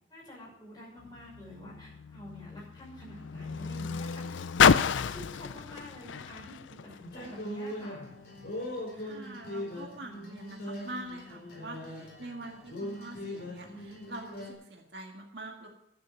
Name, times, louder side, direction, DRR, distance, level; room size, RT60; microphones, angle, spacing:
voice 1, 0.1-8.1, left 1 dB, 20° left, -4 dB, 6.0 m, -48 dB
Car, 1.0-7.6 8.4-8.5, left 7 dB, 75° left, 0.4 m, -30 dB
sound 1, 7.1-14.5, left 1 dB, 55° left, 4.3 m, -40 dB
voice 2, 8.9-15.7, right 2 dB, 60° right, 1 dB, 2.0 m, -44 dB
13.5 x 8.2 x 6.5 m, 0.82 s
head